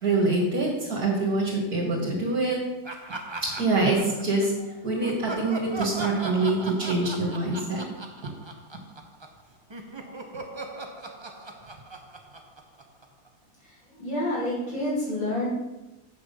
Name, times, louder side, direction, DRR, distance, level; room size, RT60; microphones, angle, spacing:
voice 1, 0.0-2.6 3.4-7.8 10.5-10.8, right 2 dB, 55° right, -3 dB, 2.4 m, -25 dB
Laughter, 2.8-4.6 5.0-9.4 9.7-13.3, right 2 dB, 25° right, 0.6 m, -39 dB
voice 2, 13.6-15.5, left 1 dB, 85° left, -7 dB, 4.9 m, -29 dB
8.2 x 6.0 x 6.9 m, 1.0 s
omnidirectional pair, 2.0 m